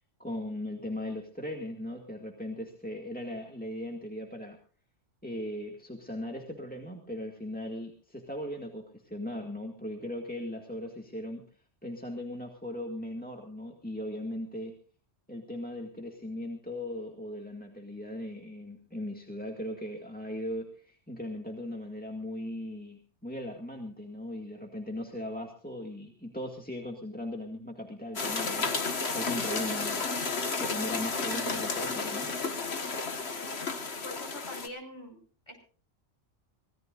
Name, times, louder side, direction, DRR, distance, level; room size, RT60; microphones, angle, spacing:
voice 1, 0.2-4.6 5.2-11.4 11.8-14.8 15.3-30.0 30.6-32.3, left 1 dB, 5° left, 1 dB, 2.1 m, -38 dB
sound 1, 28.1-34.7, left 4 dB, 60° left, 1.8 m, -32 dB
voice 2, 34.0-35.6, equal, 25° left, 3 dB, 5.2 m, -44 dB
25.5 x 17.5 x 2.6 m, 0.40 s
omnidirectional pair, 1.2 m